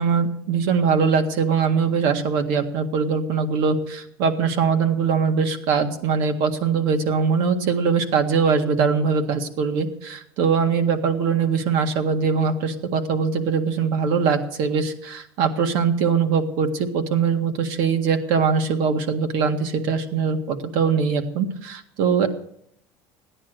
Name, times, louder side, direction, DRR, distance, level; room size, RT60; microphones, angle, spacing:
voice 1, 0.0-22.3, right 6 dB, 70° right, 6 dB, 1.8 m, -22 dB
15.5 x 10.0 x 6.6 m, 0.71 s
cardioid pair, 155°, 8 cm